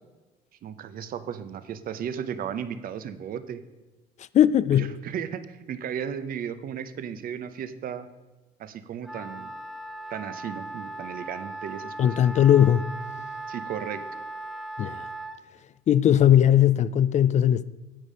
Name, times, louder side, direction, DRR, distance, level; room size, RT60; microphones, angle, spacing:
voice 1, 0.6-3.6 4.7-8.1 8.6-9.5 10.1-12.1 13.5-14.0, right 8 dB, 60° right, 0.8 m, -35 dB
voice 2, 4.3-4.9 12.0-12.8 14.8-15.1 15.9-17.6, left 10 dB, 45° left, 0.4 m, -19 dB
Wind instrument woodwind instrument, 9.0-15.4, right 2 dB, ahead, 1.0 m, -38 dB
9.2 x 8.4 x 5.1 m
cardioid pair, 110°, 17 cm